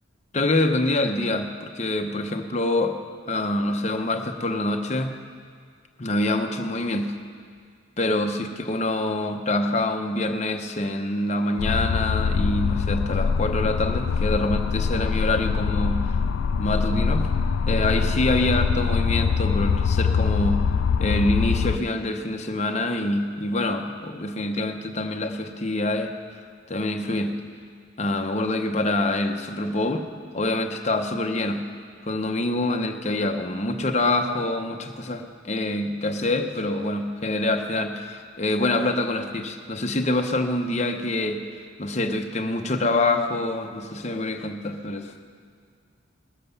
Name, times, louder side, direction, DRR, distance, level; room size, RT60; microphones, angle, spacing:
voice 1, 0.3-3.0 3.3-5.2 6.0-7.1 8.0-16.2 16.6-17.3 17.7-20.6 21.0-26.1 26.7-27.3 28.0-30.1 30.3-31.6 32.0-41.4 41.8-45.1, left 2 dB, 35° left, 5 dB, 0.8 m, -25 dB
sound 1, 11.6-21.8, left 5 dB, 80° left, 0.3 m, -23 dB
20.0 x 7.6 x 6.8 m, 2.1 s
head